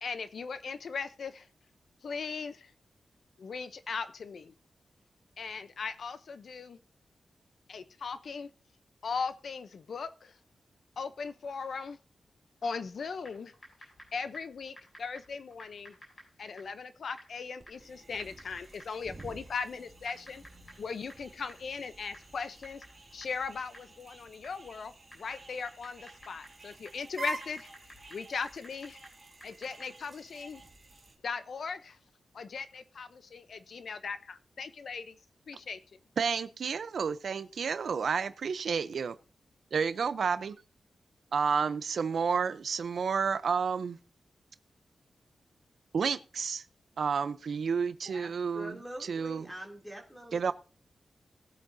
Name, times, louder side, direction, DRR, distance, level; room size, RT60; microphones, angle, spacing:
voice 1, 0.0-1.5 2.0-2.7 3.4-4.5 5.4-6.8 7.7-8.5 9.0-10.3 11.0-12.0 12.6-13.5 14.1-15.9 16.4-20.4 20.8-22.8 23.1-27.7 28.1-29.0 29.4-30.6 31.2-32.0 32.3-35.1 35.5-35.8, left 5 dB, 60° left, 11 dB, 0.6 m, -38 dB
Typing, 13.2-30.1, left 1 dB, 30° left, 5.9 m, -57 dB
sound 1, 17.6-31.2, right 3 dB, 30° right, 2.2 m, -49 dB
voice 2, 36.2-39.2 39.7-40.6 41.3-44.0 45.9-46.6 47.0-49.5 50.3-50.5, right 6 dB, 65° right, 13 dB, 0.6 m, -30 dB
voice 3, 48.1-50.5, equal, 5° left, 0 dB, 2.7 m, -45 dB
19.0 x 8.5 x 2.7 m, 0.36 s
wide cardioid pair, 170°, 0 cm